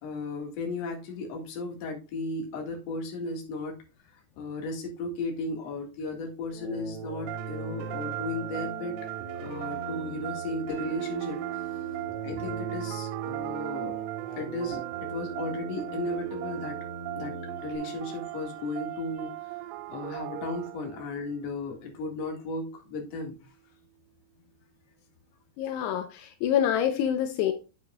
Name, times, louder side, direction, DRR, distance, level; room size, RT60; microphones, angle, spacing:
voice 1, 0.0-3.8 4.1-9.0 9.3-11.4 12.2-13.9 14.3-16.8 17.2-17.4 17.6-19.6 19.9-23.4, left 2 dB, 50° left, 2 dB, 2.4 m, -35 dB
sound 1, 6.5-17.8, right 3 dB, 60° right, 2.2 m, -40 dB
Rings in the sun, 7.3-21.1, right 17 dB, 85° right, 2.7 m, -39 dB
sound 2, 10.7-22.8, right 14 dB, 65° left, 3.1 m, -42 dB
voice 2, 25.6-27.5, left 9 dB, 80° left, 8 dB, 2.8 m, -26 dB
8.6 x 7.4 x 2.3 m, 0.31 s
omnidirectional pair, 4.9 m